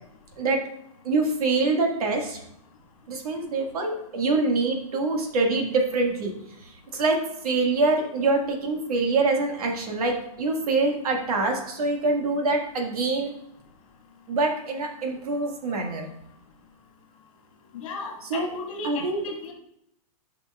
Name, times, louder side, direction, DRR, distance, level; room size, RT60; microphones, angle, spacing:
voice 1, 1.0-2.4 3.1-6.3 6.6-7.2 7.4-13.3 14.3-16.0 18.3-18.5 18.8-19.2, right 3 dB, 80° right, 2 dB, 1.9 m, -25 dB
voice 2, 17.7-19.5, left 4 dB, 60° left, -1 dB, 2.1 m, -36 dB
10.5 x 5.8 x 2.4 m, 0.75 s
hypercardioid pair, 170°, 19 cm